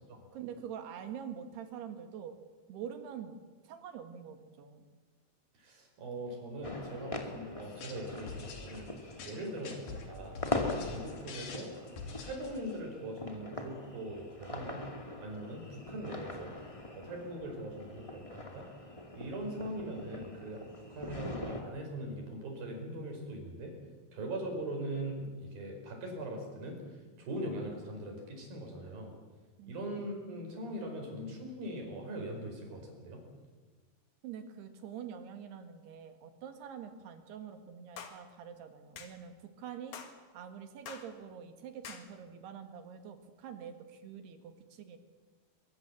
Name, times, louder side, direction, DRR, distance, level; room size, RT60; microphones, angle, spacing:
voice 1, 0.3-2.4 2.7-4.9 29.6-29.7 34.2-40.0 40.3-45.0, right 8 dB, 90° right, 7 dB, 3.9 m, -45 dB
voice 2, 5.5-8.9 9.2-11.7 12.2-14.8 15.2-16.5 17.0-18.7 19.1-23.7 24.1-29.1 29.7-33.2, right 1 dB, 65° right, 2 dB, 6.8 m, -41 dB
sound 1, 6.6-21.6, left 2 dB, 15° left, 1.4 m, -42 dB
sound 2, 7.6-12.8, left 5 dB, 75° left, 4.5 m, -45 dB
sound 3, 38.0-38.2 39.0-39.1 39.9-40.2 40.9-41.1 41.8-42.1, left 6 dB, 55° left, 3.1 m, -45 dB
23.0 x 22.5 x 7.5 m, 1.4 s
omnidirectional pair, 4.6 m